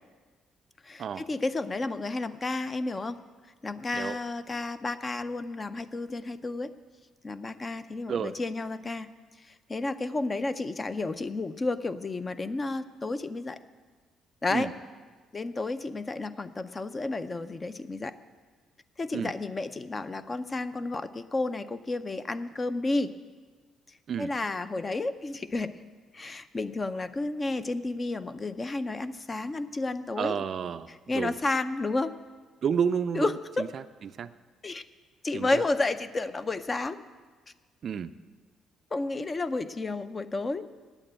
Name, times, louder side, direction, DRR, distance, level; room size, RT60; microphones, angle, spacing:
voice 1, 0.8-3.2 3.6-6.7 7.2-9.1 9.5-13.6 14.4-14.7 15.3-18.1 19.0-23.1 24.2-25.8 26.1-30.5 30.9-32.1 33.1-33.7 34.6-34.8 35.2-37.0 38.9-40.6, left 2 dB, 25° left, 12 dB, 0.4 m, -31 dB
voice 2, 30.2-31.3 32.6-33.3 33.6-33.8 34.2-34.3 35.3-35.6 37.8-38.1, right 7 dB, 45° right, 13 dB, 0.4 m, -30 dB
8.9 x 8.8 x 8.6 m, 1.4 s
cardioid pair, 135°, 0 cm